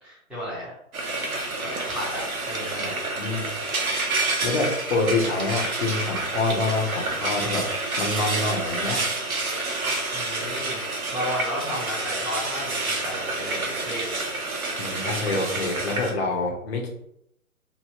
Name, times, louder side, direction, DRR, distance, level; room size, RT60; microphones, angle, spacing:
voice 1, 0.0-0.7 1.6-2.2 2.5-3.0 10.1-10.8 11.1-14.2, equal, ahead, -12 dB, 0.7 m, -33 dB
Frying (food), 0.9-16.1, right 2 dB, 75° right, 0.9 m, -29 dB
voice 2, 3.2-3.5 4.4-7.7 8.0-9.0 14.8-16.9, left 3 dB, 45° left, 0 dB, 0.8 m, -26 dB
3.1 x 2.7 x 2.7 m, 0.75 s
figure-of-eight pair, 130°, 44 cm